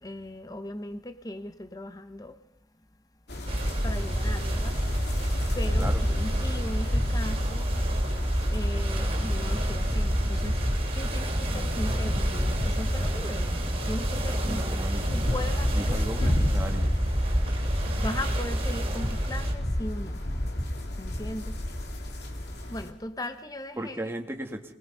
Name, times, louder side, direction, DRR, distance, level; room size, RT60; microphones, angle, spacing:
voice 1, 0.0-2.4 3.8-4.8 5.1-7.7 8.5-10.7 10.9-16.6 18.0-20.5 21.0-21.6 22.7-24.1, left 1 dB, 20° left, 0.9 m, -38 dB
sound 1, 3.3-22.9, left 1 dB, 65° left, 3.1 m, -32 dB
sound 2, 3.5-19.6, equal, 30° right, 3.1 m, -28 dB
voice 2, 14.4-15.2 15.7-17.0 23.8-24.7, right 1 dB, 15° right, 1.9 m, -36 dB
26.0 x 20.5 x 5.6 m
head